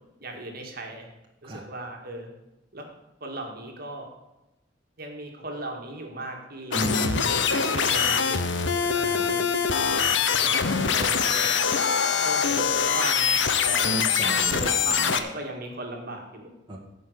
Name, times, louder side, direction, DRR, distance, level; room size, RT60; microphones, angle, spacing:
voice 1, 0.2-1.1 1.4-2.3 2.7-2.9 3.2-4.1 5.0-6.8 7.4-8.5 8.7-9.4 9.8-11.8 12.2-13.9 14.3-16.5, right 1 dB, 50° right, 2 dB, 2.1 m, -37 dB
sound 1, 6.7-15.2, left 6 dB, 70° left, 0.9 m, -23 dB
voice 2, 6.7-7.4 9.0-9.3 13.8-15.1 16.7-16.8, equal, 25° right, -2 dB, 1.9 m, -33 dB
15.0 x 5.4 x 8.0 m, 0.97 s
head